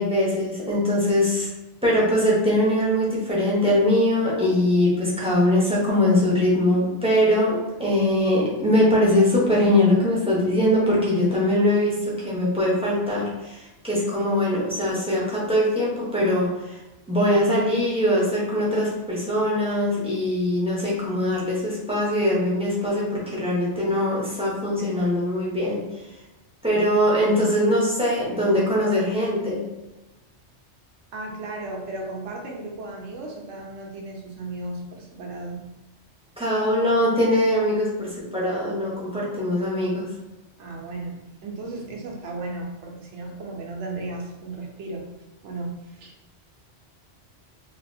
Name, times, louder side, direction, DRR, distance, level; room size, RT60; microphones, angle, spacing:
voice 1, 0.0-1.5 1.8-16.8 17.1-25.9 26.6-29.6 36.4-40.1, left 1 dB, 5° right, -6 dB, 0.6 m, -22 dB
voice 2, 31.1-35.6 40.6-45.1 45.4-46.1, right 2 dB, 75° right, 1 dB, 0.9 m, -35 dB
3.4 x 2.3 x 2.6 m, 1.0 s
omnidirectional pair, 1.2 m